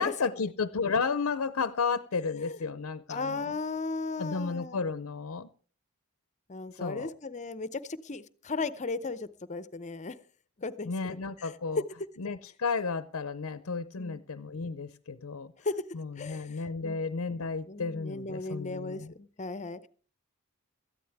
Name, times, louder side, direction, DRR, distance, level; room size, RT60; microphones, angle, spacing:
voice 1, 0.0-3.4 4.2-5.5 6.7-7.1 10.9-11.8 12.2-15.5 15.9-19.1, left 5 dB, 70° left, 14 dB, 0.6 m, -33 dB
voice 2, 2.3-2.6 3.1-4.8 6.5-10.2 10.6-10.9 11.4-11.5 14.0-14.2 15.6-15.8 16.2-17.0 17.7-19.9, left 3 dB, 35° left, 15 dB, 0.6 m, -36 dB
17.5 x 13.5 x 3.5 m, 0.42 s
head